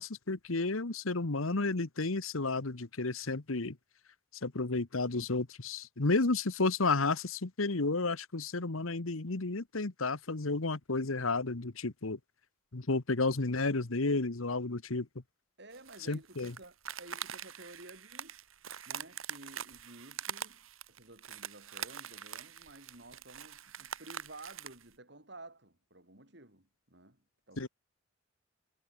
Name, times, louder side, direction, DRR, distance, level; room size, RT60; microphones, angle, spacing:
voice 1, 0.0-3.8 4.4-12.2 12.7-15.1 16.1-16.5 27.6-27.7, left 3 dB, 85° left, 1.3 m, -32 dB
voice 2, 15.6-18.4 18.9-20.6 20.9-27.7, right 2 dB, 55° right, 5.4 m, -53 dB
sound 1, 15.7-24.8, right 8 dB, 85° right, 7.3 m, -44 dB
head